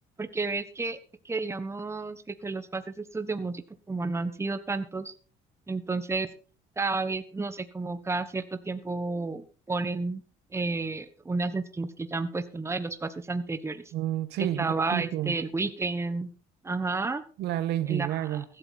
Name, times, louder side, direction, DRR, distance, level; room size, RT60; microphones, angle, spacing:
voice 1, 0.2-1.0 1.2-3.6 3.9-5.1 5.7-6.3 6.8-10.2 10.5-13.8 14.6-16.3 16.6-17.2 17.9-18.4, right 3 dB, 15° right, 1.4 m, -31 dB
voice 2, 13.9-15.4 17.4-18.4, right 12 dB, 85° right, 1.6 m, -30 dB
15.5 x 12.0 x 4.2 m
cardioid pair, 110°, 17 cm